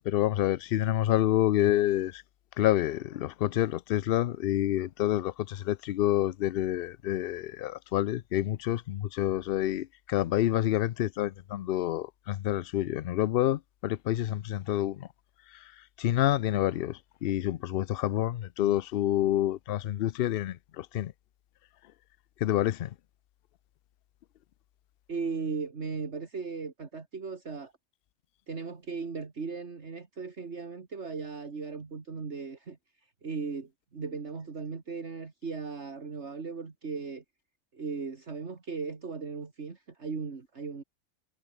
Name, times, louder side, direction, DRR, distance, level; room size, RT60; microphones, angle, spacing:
voice 1, 0.0-2.2 2.6-15.1 16.0-21.1 22.4-22.9, left 13 dB, 60° left, 0.6 m, -28 dB
voice 2, 25.1-27.7 28.5-32.8 33.2-37.2 37.7-40.8, right 4 dB, 55° right, 2.4 m, -37 dB
omnidirectional pair, 1.4 m